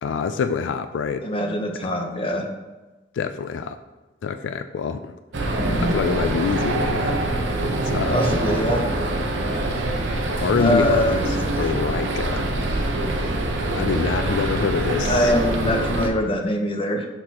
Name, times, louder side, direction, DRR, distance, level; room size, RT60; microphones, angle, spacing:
voice 1, 0.0-1.3 1.8-1.9 3.1-3.8 4.2-5.1 5.9-7.3 7.6-8.2 10.4-11.2 11.6-12.5 13.7-15.3, left 6 dB, 80° left, 9 dB, 0.3 m, -26 dB
voice 2, 1.2-2.5 5.6-6.0 8.1-8.9 10.6-11.2 11.6-11.7 15.1-17.1, left 1 dB, 30° left, 3 dB, 0.8 m, -23 dB
sound 1, 5.3-16.1, right 2 dB, 85° right, 0.8 m, -24 dB
6.6 x 6.0 x 2.9 m, 1.2 s
head